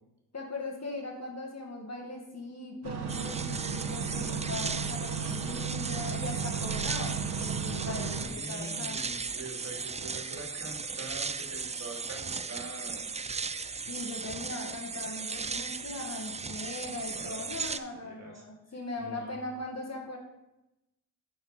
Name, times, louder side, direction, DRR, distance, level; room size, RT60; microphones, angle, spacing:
voice 1, 0.3-9.0 13.9-20.2, left 2 dB, 40° left, 0 dB, 1.9 m, -39 dB
sound 1, 2.8-8.3, right 7 dB, 85° right, 1.2 m, -35 dB
sound 2, 3.1-17.8, right 4 dB, 20° right, 0.4 m, -37 dB
voice 2, 8.2-13.1 17.1-18.4 19.0-19.4, right 2 dB, 45° right, -1 dB, 2.5 m, -44 dB
8.2 x 4.7 x 5.2 m, 0.93 s
supercardioid pair, 50°, 38 cm